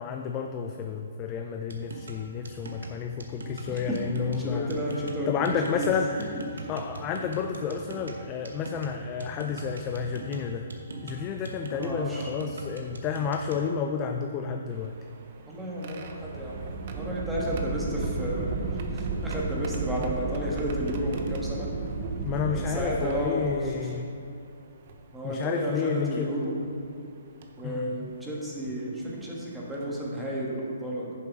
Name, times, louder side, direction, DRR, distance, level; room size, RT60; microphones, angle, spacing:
voice 1, 0.0-4.7 5.3-6.4 6.7-10.7 11.0-14.9 22.2-24.1 25.2-26.3 27.6-28.1, left 6 dB, 25° left, 4 dB, 0.4 m, -31 dB
sound 1, 1.7-13.7, right 2 dB, 85° right, 1.1 m, -41 dB
voice 2, 3.7-5.3 5.6-5.9 6.5-6.7 11.7-12.3 15.5-16.6 16.9-18.6 18.9-21.7 22.4-23.9 25.1-26.5 27.6-31.1, equal, 5° right, -5 dB, 1.4 m, -32 dB
sound 2, 14.7-24.0 24.9-25.0 26.4-26.7 27.4-27.6 29.2-29.3 29.7-30.0, right 4 dB, 45° right, 0.7 m, -34 dB
9.6 x 7.0 x 3.6 m, 2.6 s
hypercardioid pair, 150°, 0 cm